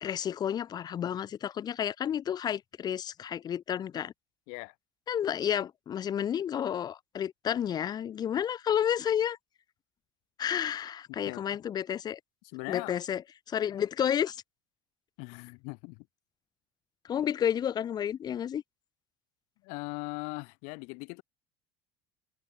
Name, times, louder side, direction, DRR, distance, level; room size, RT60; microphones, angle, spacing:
voice 1, 0.0-4.1 5.1-9.4 10.4-12.2 12.7-13.2 13.5-14.4 17.0-18.6, left 9 dB, 30° left, 0.5 m, -31 dB
voice 2, 12.4-13.0 15.2-16.1 19.6-21.2, left 33 dB, 70° left, 1.0 m, -39 dB
supercardioid pair, 115°, 13 cm